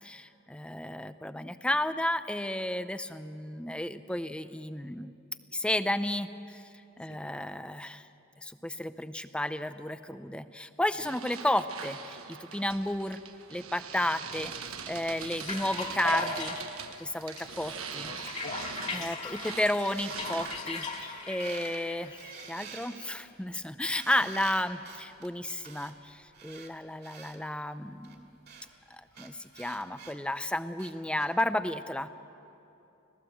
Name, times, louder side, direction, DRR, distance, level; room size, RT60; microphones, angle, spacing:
voice 1, 0.0-5.1 5.5-6.6 7.0-8.1 8.4-13.2 13.5-14.5 14.9-16.6 17.0-18.3 18.9-22.2 22.5-28.3 28.9-32.1, left 1 dB, 5° left, 12 dB, 0.5 m, -32 dB
sound 1, 11.0-21.2, right 7 dB, 90° right, 1.3 m, -42 dB
sound 2, 15.2-22.5, left 3 dB, 35° left, 2.3 m, -39 dB
voice 2, 18.1-18.6 18.8-19.2, left 5 dB, 55° left, 14 dB, 0.7 m, -48 dB
sound 3, 19.8-21.1 21.4-21.8 22.1-27.4 28.0-31.3, right 6 dB, 50° right, 2.5 m, -48 dB
25.0 x 17.5 x 7.8 m, 3.0 s
head